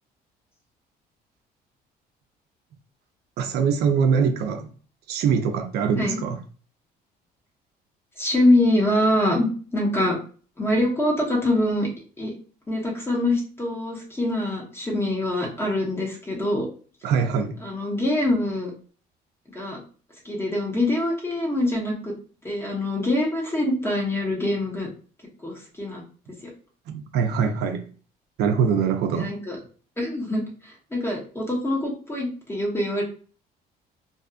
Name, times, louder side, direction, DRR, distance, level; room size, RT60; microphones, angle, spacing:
voice 1, 3.4-4.7 5.1-6.4 17.0-17.5 26.9-27.9 28.4-29.3, right 6 dB, 75° right, 0.5 m, -23 dB
voice 2, 8.2-10.2 10.6-11.9 12.2-12.3 12.7-16.7 17.6-18.7 19.5-19.8 20.2-22.1 22.4-24.9 25.4-26.0 26.4-26.5 29.1-29.6 30.0-33.0, left 1 dB, 15° left, 1.0 m, -24 dB
2.5 x 2.4 x 2.4 m
cardioid pair, 110°, 17 cm